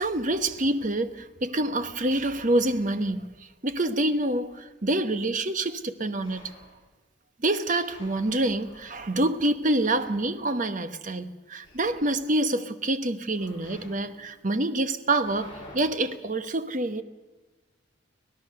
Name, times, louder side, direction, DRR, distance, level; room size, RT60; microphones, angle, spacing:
voice 1, 0.0-6.5 7.4-17.0, right 1 dB, 40° right, 1.1 m, -27 dB
sound 1, 6.2-6.9 7.8-11.1 11.6-12.3 13.4-15.8, left 2 dB, 25° left, 7.6 m, -51 dB
25.0 x 17.0 x 6.6 m
head